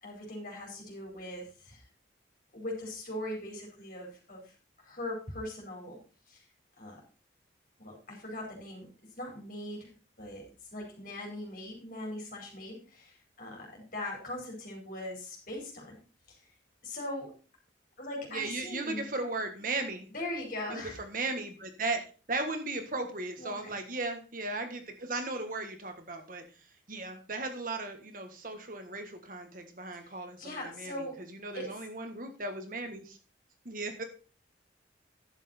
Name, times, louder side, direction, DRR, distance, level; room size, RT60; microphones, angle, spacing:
voice 1, 0.0-1.8 2.5-4.5 4.8-6.0 6.3-6.4 6.8-7.0 7.8-8.9 9.2-9.9 10.2-16.0 16.3-16.5 16.8-17.3 18.0-19.1 20.1-21.0 23.4-23.8 30.0-30.1 30.4-31.2 31.5-31.7, left 1 dB, 50° left, 0 dB, 4.7 m, -40 dB
voice 2, 18.3-20.1 20.7-22.0 22.3-26.4 26.9-33.2 33.7-34.0, right 2 dB, 45° right, 6 dB, 1.6 m, -36 dB
11.0 x 7.5 x 4.3 m, 0.35 s
head